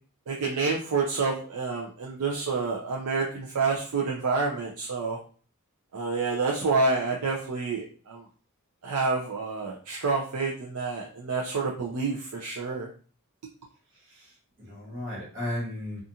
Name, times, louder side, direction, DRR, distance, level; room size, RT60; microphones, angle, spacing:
voice 1, 0.3-5.2 5.9-8.2 8.8-12.9, right 4 dB, 80° right, -2 dB, 0.5 m, -28 dB
voice 2, 14.1-16.0, left 1 dB, 55° right, -4 dB, 1.3 m, -35 dB
2.4 x 2.4 x 2.7 m, 0.41 s
head